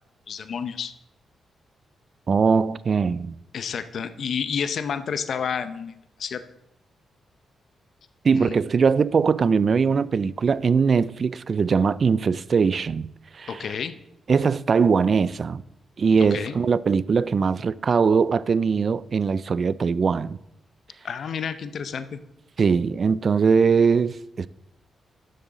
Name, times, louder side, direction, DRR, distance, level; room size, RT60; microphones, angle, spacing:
voice 1, 0.3-0.9 3.5-5.9 6.2-6.4 8.3-8.6 13.5-13.9 16.3-16.5 21.0-22.2, left 7 dB, 65° left, 0.7 m, -30 dB
voice 2, 2.3-3.4 8.2-13.7 14.3-15.6 16.0-20.4 22.6-24.5, right 5 dB, 50° right, 0.3 m, -21 dB
12.0 x 7.4 x 4.0 m
cardioid pair, 95°, 0 cm